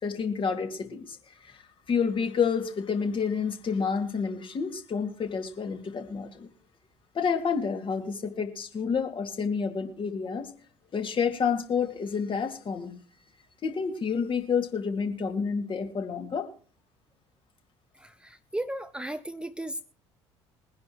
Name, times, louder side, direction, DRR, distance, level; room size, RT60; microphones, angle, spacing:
voice 1, 0.0-1.6 1.9-6.5 7.1-10.5 10.9-13.0 13.6-16.5, left 6 dB, 35° left, 5 dB, 2.5 m, -29 dB
voice 2, 18.0-19.8, right 1 dB, 5° right, 12 dB, 0.8 m, -35 dB
22.5 x 10.5 x 3.1 m, 0.43 s
figure-of-eight pair, 55°, 15 cm